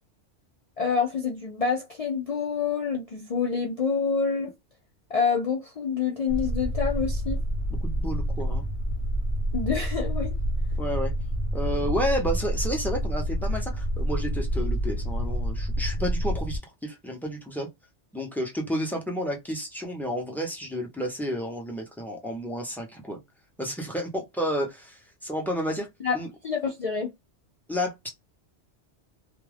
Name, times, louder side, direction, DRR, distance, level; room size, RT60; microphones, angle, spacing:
voice 1, 0.8-4.5 5.1-7.4 9.5-10.3 26.0-26.2 26.4-27.1, left 5 dB, 75° left, 0.3 m, -27 dB
sound 1, 6.3-16.6, equal, 60° left, 0.9 m, -28 dB
voice 2, 7.8-8.6 10.8-11.1 11.5-17.7 18.1-23.2 23.6-25.9 26.1-26.3 27.7-28.1, equal, ahead, 0.5 m, -31 dB
2.3 x 2.2 x 3.2 m
omnidirectional pair, 1.2 m